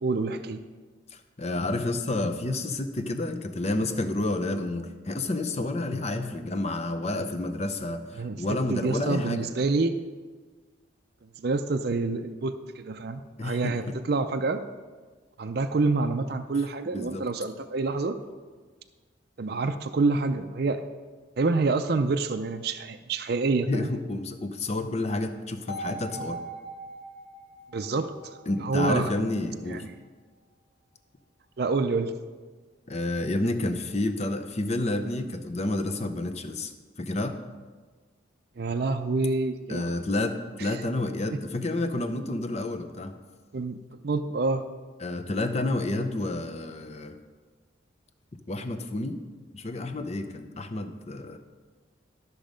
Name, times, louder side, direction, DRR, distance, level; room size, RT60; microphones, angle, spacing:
voice 1, 0.0-0.6 8.2-8.4 8.7-10.0 11.2-14.6 15.4-18.2 19.4-20.8 21.4-23.9 27.7-28.2 28.6-29.1 29.7-29.9 31.6-32.2 38.6-39.9 40.6-40.8 43.5-44.6, right 3 dB, 55° right, 8 dB, 0.5 m, -27 dB
voice 2, 1.1-9.5 13.4-14.0 16.9-17.2 23.7-26.4 28.5-29.8 32.9-36.7 37.0-37.4 39.7-43.2 45.0-47.2 48.3-49.2 49.5-51.4, left 2 dB, 35° left, 8 dB, 0.6 m, -30 dB
sound 1, 25.7-29.7, right 2 dB, 75° left, 2.7 m, -41 dB
12.5 x 6.3 x 5.1 m, 1.4 s
head